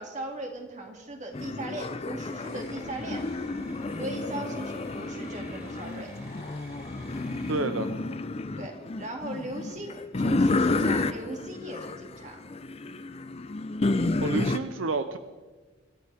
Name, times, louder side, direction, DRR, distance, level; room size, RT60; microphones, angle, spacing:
voice 1, 0.0-3.2 4.0-6.1 8.6-12.4, right 1 dB, 35° right, 2 dB, 2.4 m, -38 dB
sound 1, 1.3-14.6, left 2 dB, 30° left, 0.5 m, -30 dB
sound 2, 2.4-7.5, right 1 dB, 15° right, 3.8 m, -49 dB
voice 2, 7.5-7.9 14.2-15.2, right 3 dB, 75° right, 9 dB, 0.7 m, -29 dB
25.5 x 13.5 x 3.5 m, 1.3 s
head